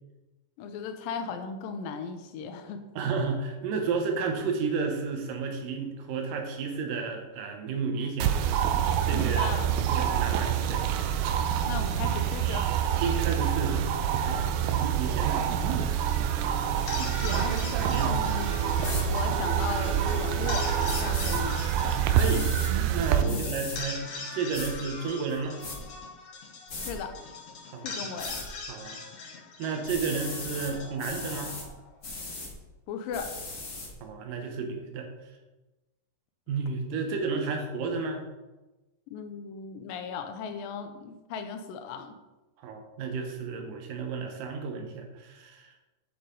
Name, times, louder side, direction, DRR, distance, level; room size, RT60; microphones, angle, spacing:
voice 1, 0.6-2.9 9.1-9.7 11.7-12.7 17.2-17.6 18.0-18.5 19.0-20.7 21.0-21.7 23.2-23.5 26.8-27.1 27.8-28.4 32.9-33.3 39.1-42.1, left 6 dB, 85° left, 7 dB, 2.5 m, -36 dB
voice 2, 3.0-8.3 9.1-9.5 9.9-10.8 13.0-13.9 14.2-14.5 14.7-15.5 17.9-18.1 22.1-22.5 22.9-24.0 24.3-25.6 27.7-28.1 28.7-29.0 29.6-31.6 34.0-35.1 36.5-38.2 42.6-45.7, right 5 dB, 75° right, 4 dB, 2.7 m, -32 dB
sound 1, 8.2-23.2, right 9 dB, 90° right, 1.6 m, -26 dB
sound 2, 16.7-31.9, left 4 dB, 60° left, 2.0 m, -42 dB
sound 3, 18.8-19.0 20.8-21.4 22.1-22.7 23.3-23.8 24.5-24.7 25.3-25.8 26.7-26.9 28.2-28.5 29.9-30.7 31.0-31.6 32.0-32.5 33.1-33.9, left 3 dB, 40° left, 1.4 m, -37 dB
8.3 x 7.8 x 3.9 m, 1.1 s
omnidirectional pair, 4.0 m